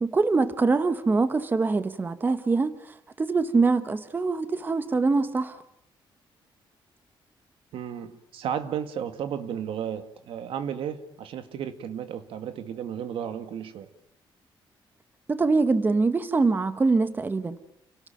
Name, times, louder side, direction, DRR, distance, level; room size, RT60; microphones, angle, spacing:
voice 1, 0.0-2.7 3.2-5.6 15.3-17.6, right 3 dB, 20° right, 12 dB, 1.1 m, -23 dB
voice 2, 7.7-13.9, right 8 dB, 80° right, 9 dB, 2.1 m, -33 dB
29.0 x 18.5 x 9.1 m, 0.77 s
cardioid pair, 155°, 9 cm